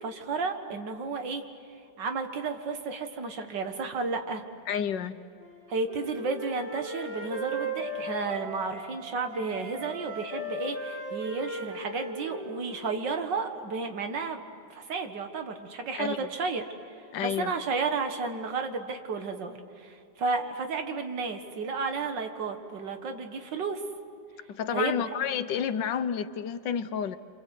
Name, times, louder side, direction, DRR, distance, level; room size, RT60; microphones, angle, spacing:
voice 1, 0.0-1.4 2.0-4.4 5.7-14.4 14.7-23.8 24.7-25.0, right 4 dB, 85° right, 6 dB, 2.3 m, -32 dB
voice 2, 4.7-5.2 15.9-16.3 17.1-17.5 24.6-27.2, left 8 dB, 90° left, 11 dB, 1.6 m, -30 dB
Wind instrument woodwind instrument, 5.4-9.0 9.3-13.1, right 1 dB, 40° right, 5.7 m, -37 dB
27.5 x 26.5 x 8.3 m, 2.3 s
omnidirectional pair, 1.9 m